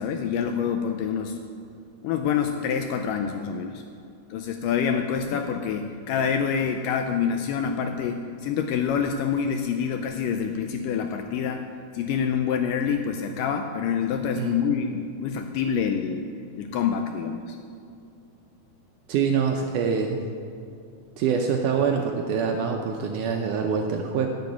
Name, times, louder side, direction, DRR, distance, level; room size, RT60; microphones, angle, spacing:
voice 1, 0.0-1.4 2.0-3.8 4.3-11.6 11.9-16.3 16.6-17.6, left 7 dB, 85° left, 5 dB, 1.9 m, -26 dB
voice 2, 19.1-20.2 21.2-24.3, right 6 dB, 80° right, 3 dB, 1.9 m, -25 dB
10.5 x 7.0 x 8.4 m, 2.4 s
omnidirectional pair, 4.4 m